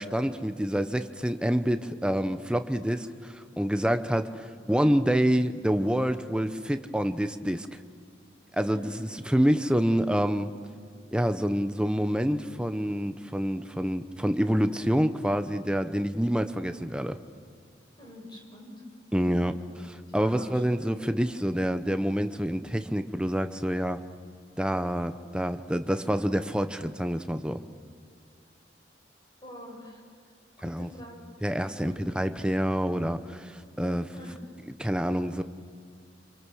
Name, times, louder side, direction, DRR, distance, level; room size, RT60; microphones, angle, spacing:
voice 1, 0.0-7.8 8.5-10.5 11.1-17.2 19.1-24.0 24.6-27.6 30.6-30.9 31.4-34.1 34.8-35.4, equal, 5° right, 9 dB, 0.9 m, -27 dB
voice 2, 18.0-18.8 19.2-19.4 20.1-20.5 29.4-30.0 30.6-31.2 31.8-32.0 34.1-34.4, left 1 dB, 25° left, 0 dB, 6.0 m, -45 dB
27.0 x 25.5 x 6.3 m, 2.2 s
head